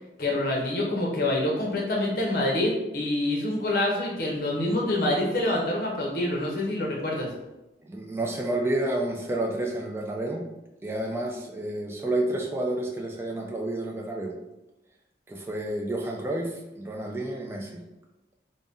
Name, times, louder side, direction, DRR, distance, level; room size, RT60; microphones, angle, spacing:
voice 1, 0.2-7.3, left 1 dB, 55° left, -2 dB, 0.7 m, -26 dB
voice 2, 7.8-10.4 10.8-14.3 15.3-17.8, right 1 dB, 15° right, 0 dB, 0.3 m, -30 dB
2.6 x 2.1 x 3.5 m, 0.95 s
head